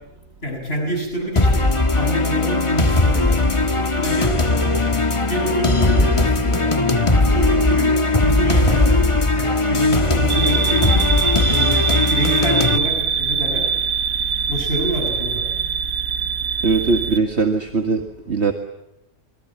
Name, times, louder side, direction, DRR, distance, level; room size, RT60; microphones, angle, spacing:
voice 1, 0.4-4.8 5.3-8.0 8.2-11.2 11.5-13.7 14.5-15.5, right 1 dB, 55° left, 2 dB, 7.1 m, -27 dB
sound 1, 1.4-12.8, left 2 dB, 25° left, 1.6 m, -18 dB
sound 2, 10.3-17.2, right 6 dB, 80° right, 1.6 m, -22 dB
voice 2, 16.6-18.5, right 4 dB, 60° right, 5 dB, 2.1 m, -20 dB
28.0 x 23.0 x 7.4 m, 0.91 s
omnidirectional pair, 1.3 m